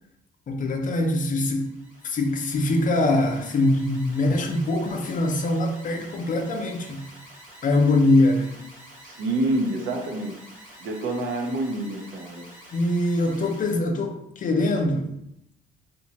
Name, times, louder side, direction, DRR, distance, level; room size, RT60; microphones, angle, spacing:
voice 1, 0.5-1.8 2.0-7.1 7.6-8.7 12.7-15.1, left 2 dB, 40° left, 4 dB, 0.5 m, -23 dB
Alarm, 1.5-13.8, right 1 dB, 40° right, 1.1 m, -48 dB
voice 2, 9.0-10.4 10.8-12.4, right 2 dB, 75° right, 3 dB, 0.6 m, -27 dB
2.8 x 2.2 x 2.8 m, 0.81 s
cardioid pair, 90°, 20 cm